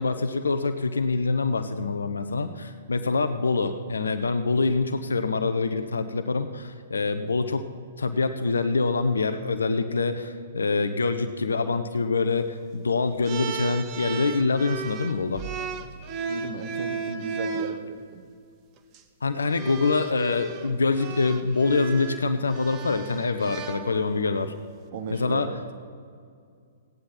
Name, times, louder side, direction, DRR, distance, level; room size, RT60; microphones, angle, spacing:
voice 1, 0.0-7.7 8.0-15.4 19.2-24.5 25.1-25.5, left 3 dB, 75° left, 9 dB, 0.7 m, -25 dB
sound 1, 13.2-17.8 18.8-19.0 19.5-24.3, right 6 dB, 30° right, 0.9 m, -35 dB
voice 2, 16.3-18.2 24.9-25.7, right 5 dB, 50° right, 7 dB, 1.2 m, -35 dB
16.5 x 9.5 x 4.3 m, 2.2 s
figure-of-eight pair, 115°, 0 cm